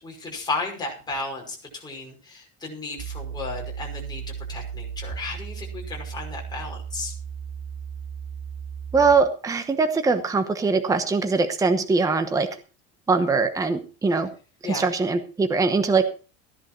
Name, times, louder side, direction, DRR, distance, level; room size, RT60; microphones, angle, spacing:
voice 1, 0.0-4.2 4.5-7.1 14.6-14.9, left 3 dB, 10° left, -1 dB, 5.7 m, -34 dB
sound 1, 3.0-9.2, right 7 dB, 40° right, 3.3 m, -35 dB
voice 2, 8.9-12.5 13.1-14.3 14.6-16.0, right 4 dB, 10° right, 8 dB, 1.0 m, -22 dB
16.0 x 11.0 x 4.4 m, 0.35 s
cardioid pair, 170°, 33 cm